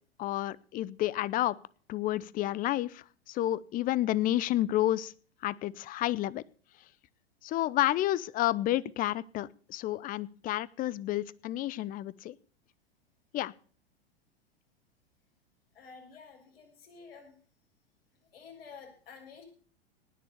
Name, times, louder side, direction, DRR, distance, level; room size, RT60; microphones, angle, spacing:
voice 1, 0.2-1.5 1.9-5.1 5.4-6.4 7.4-12.4 13.3-13.5, left 14 dB, 25° left, 22 dB, 0.6 m, -30 dB
voice 2, 15.7-17.3 18.3-19.4, left 5 dB, 70° left, 1 dB, 7.1 m, -50 dB
19.0 x 6.9 x 6.9 m, 0.44 s
figure-of-eight pair, 95°, 31 cm